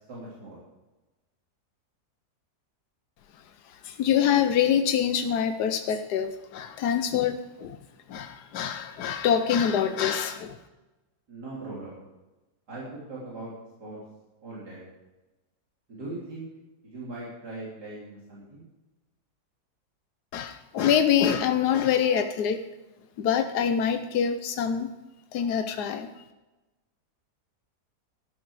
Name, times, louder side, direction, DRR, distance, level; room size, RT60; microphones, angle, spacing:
voice 1, 0.1-0.6 11.3-12.0 12.7-13.5 13.8-14.0 14.4-14.8 15.9-16.5 16.8-18.6, right 2 dB, 85° right, -7 dB, 4.1 m, -39 dB
voice 2, 3.8-7.8 8.1-10.6 20.3-22.6 23.2-24.9 25.3-26.1, left 8 dB, 85° left, 8 dB, 1.4 m, -25 dB
13.0 x 11.5 x 4.8 m, 1.1 s
omnidirectional pair, 1.7 m